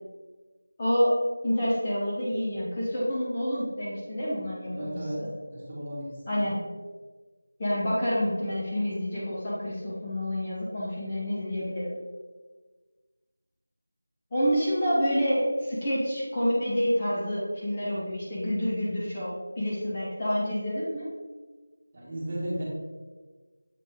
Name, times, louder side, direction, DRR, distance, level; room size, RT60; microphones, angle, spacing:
voice 1, 0.8-5.3 6.3-6.6 7.6-11.9 14.3-21.1, equal, 20° left, -8 dB, 0.8 m, -28 dB
voice 2, 4.7-5.2 5.5-6.4 21.9-22.6, right 1 dB, 25° right, -6 dB, 1.5 m, -35 dB
7.4 x 3.9 x 3.5 m, 1.4 s
figure-of-eight pair, 175°, 0 cm